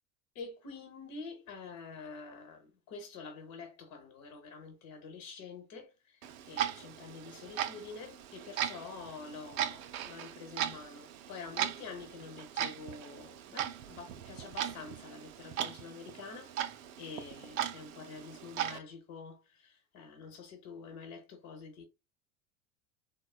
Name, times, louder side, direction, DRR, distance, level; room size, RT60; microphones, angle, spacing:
voice 1, 0.3-6.2 6.5-21.8, left 4 dB, 45° left, 1.0 m, -47 dB
Clock, 6.2-18.8, right 10 dB, 70° right, 0.6 m, -38 dB
3.6 x 2.2 x 2.3 m
hypercardioid pair, 85°, 42 cm